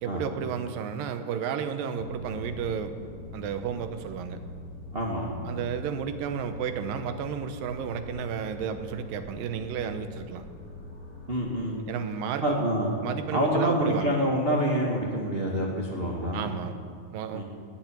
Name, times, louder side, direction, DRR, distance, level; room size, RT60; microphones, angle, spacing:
voice 1, 0.0-2.9 3.3-4.4 5.4-10.5 11.8-12.6 13.0-14.2 16.3-16.8 17.1-17.4, right 7 dB, 85° right, 9 dB, 2.7 m, -32 dB
sound 1, 2.0-11.6, left 2 dB, 30° left, 3.8 m, -43 dB
voice 2, 4.9-5.3 11.3-11.8 12.4-12.9 13.3-16.5 17.3-17.4, equal, 35° right, -2 dB, 0.9 m, -27 dB
19.5 x 7.8 x 9.0 m, 2.2 s
omnidirectional pair, 3.9 m